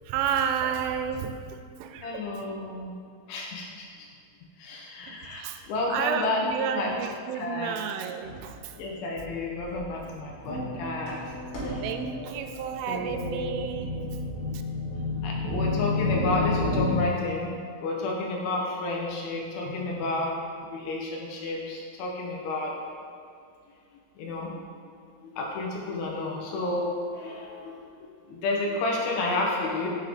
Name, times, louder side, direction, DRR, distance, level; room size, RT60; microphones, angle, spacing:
voice 1, 0.1-2.3 5.0-5.6 5.9-8.7 11.8-13.9, right 8 dB, 90° right, 7 dB, 3.0 m, -31 dB
voice 2, 2.0-2.9 3.3-3.9 4.6-6.9 7.3-7.8 8.8-11.2 11.6-11.8 12.9-13.4 15.2-17.5 17.8-20.3 20.6-22.7 24.2-24.5 25.2-29.9, left 2 dB, 80° left, -2 dB, 3.3 m, -31 dB
sound 1, 8.2-8.6 9.2-9.3 9.6-16.9, left 2 dB, 60° left, 3.0 m, -31 dB
9.2 x 5.5 x 3.6 m, 2.3 s
omnidirectional pair, 5.5 m